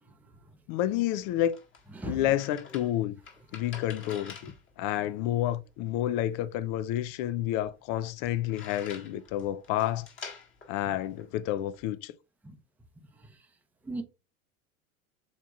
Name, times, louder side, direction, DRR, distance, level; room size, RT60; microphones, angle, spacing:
voice 1, 0.0-0.4 1.9-2.3 12.4-12.6 13.1-13.5 13.8-14.0, right 2 dB, 5° right, 0.7 m, -40 dB
voice 2, 0.7-1.6 2.1-3.1 3.5-10.1 10.7-12.1, left 12 dB, 50° left, 0.5 m, -30 dB
sound 1, 1.0-11.9, left 5 dB, 30° left, 1.7 m, -49 dB
7.3 x 2.9 x 2.4 m
hypercardioid pair, 100°, 40 cm